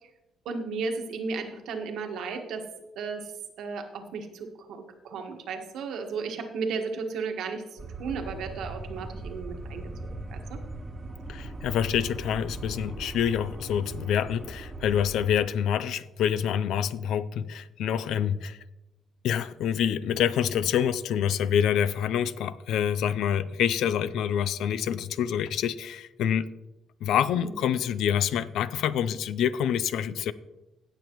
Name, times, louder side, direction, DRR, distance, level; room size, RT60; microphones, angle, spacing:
voice 1, 0.4-2.6 2.9-3.2 3.6-10.6 27.3-27.6, right 5 dB, 80° right, 1.5 m, -34 dB
sound 1, 7.8-15.4, right 2 dB, 30° right, 1.2 m, -39 dB
voice 2, 11.3-18.6 19.2-26.5 27.0-30.3, left 9 dB, 80° left, 0.5 m, -27 dB
17.0 x 6.9 x 3.1 m
cardioid pair, 90°, 0 cm